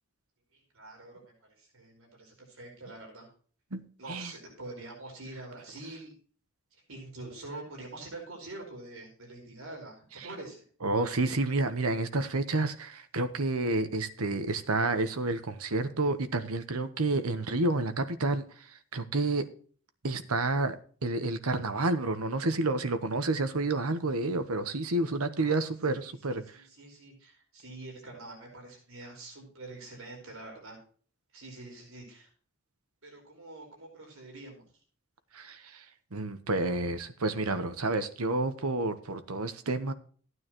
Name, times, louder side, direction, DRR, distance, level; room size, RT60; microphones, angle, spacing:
voice 1, 0.5-3.3 4.0-6.1 6.7-10.6 25.4-30.8 31.3-32.3 33.0-34.7, right 2 dB, 70° right, 4.8 m, -46 dB
voice 2, 3.7-4.3 10.8-18.7 18.9-19.5 20.0-20.8 21.0-26.4 35.3-35.8 36.1-39.9, right 2 dB, 85° right, 1.1 m, -30 dB
14.5 x 9.5 x 3.1 m
head